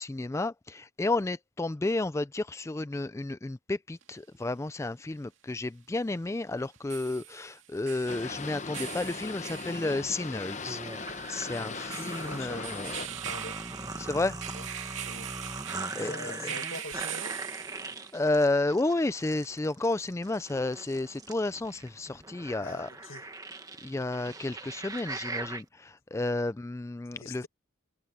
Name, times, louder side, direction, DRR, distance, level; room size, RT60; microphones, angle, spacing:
voice 1, 0.0-13.0 14.0-14.4 16.0-16.3 18.1-22.9 23.8-27.5, left 2 dB, 15° left, 0.3 m, -31 dB
sound 1, 4.0-4.1 6.6-18.2, right 11 dB, 75° right, 2.2 m, -42 dB
Boat Water vehicle, 8.1-13.1, left 4 dB, 35° left, 0.9 m, -39 dB
sound 2, 10.7-25.6, right 3 dB, 20° right, 1.5 m, -41 dB
voice 2, 11.6-13.6 14.5-14.7 15.0-15.3 16.0-17.4 22.6-23.3 27.2-27.5, left 3 dB, 85° left, 2.0 m, -44 dB
head